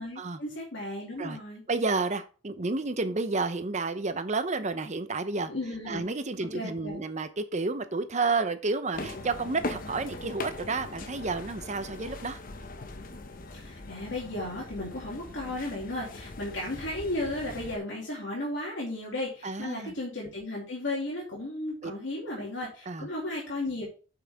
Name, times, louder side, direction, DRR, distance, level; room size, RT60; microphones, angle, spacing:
voice 1, 0.0-1.6 5.5-6.0 6.5-7.0 13.5-23.8, left 1 dB, 80° left, -4 dB, 2.6 m, -35 dB
voice 2, 1.7-5.5 5.9-12.4 19.4-19.9 21.8-21.9 22.4-22.5 22.9-23.1, right 3 dB, 40° right, 10 dB, 0.8 m, -31 dB
sound 1, 8.9-17.8, left 2 dB, 50° left, 0.9 m, -40 dB
8.3 x 5.8 x 3.5 m, 0.36 s
head